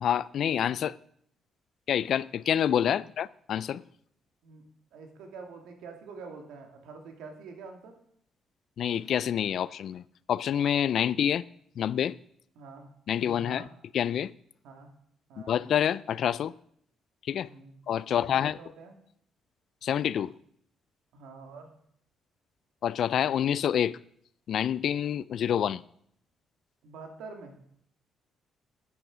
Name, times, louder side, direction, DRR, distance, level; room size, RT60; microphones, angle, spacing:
voice 1, 0.0-0.9 1.9-3.8 8.8-10.0 10.3-11.4 11.8-12.2 13.1-13.6 13.9-14.3 15.5-16.5 17.3-17.5 17.9-18.5 19.8-20.3 22.8-24.0 24.5-25.8, left 9 dB, 65° left, 0.3 m, -27 dB
voice 2, 4.9-7.9 12.6-13.7 14.6-14.9 15.3-15.6 17.5-18.9 21.1-21.7 26.8-27.5, right 4 dB, 90° right, 1.9 m, -46 dB
9.5 x 8.6 x 5.0 m
cardioid pair, 90°, 0 cm